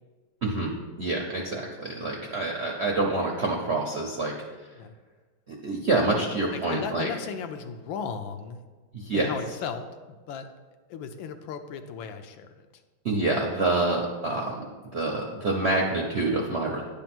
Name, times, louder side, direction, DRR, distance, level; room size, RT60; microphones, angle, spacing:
voice 1, 0.4-0.7 1.0-4.3 5.5-7.1 8.9-9.3 13.0-14.6 14.9-16.8, right 2 dB, 60° right, -1 dB, 0.7 m, -27 dB
voice 2, 6.6-8.6 9.1-10.5 10.9-12.7, left 6 dB, 75° left, 7 dB, 1.3 m, -36 dB
10.0 x 3.5 x 5.9 m, 1.3 s
omnidirectional pair, 2.2 m